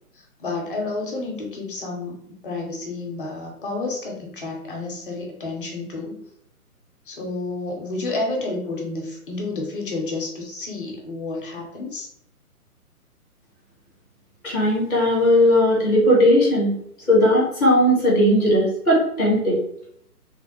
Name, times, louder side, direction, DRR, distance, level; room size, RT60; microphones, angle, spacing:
voice 1, 0.1-6.2 7.1-12.1, left 2 dB, 35° left, -1 dB, 0.8 m, -30 dB
voice 2, 14.4-16.7 17.1-19.6, equal, 5° left, -16 dB, 0.5 m, -17 dB
3.3 x 2.1 x 3.9 m, 0.70 s
figure-of-eight pair, 140°, 45 cm